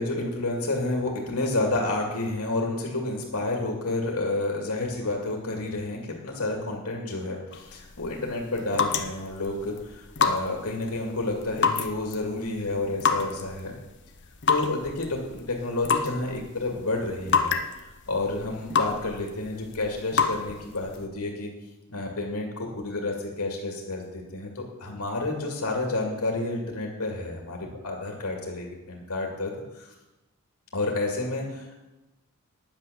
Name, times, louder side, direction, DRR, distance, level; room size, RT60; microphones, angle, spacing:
voice 1, 0.0-13.7 14.5-17.5 18.1-21.5 21.9-29.9 30.7-31.8, left 2 dB, 85° left, 0 dB, 2.3 m, -30 dB
sound 1, 7.5-21.1, left 5 dB, 55° left, 0.9 m, -30 dB
10.5 x 8.9 x 6.8 m, 1.0 s
head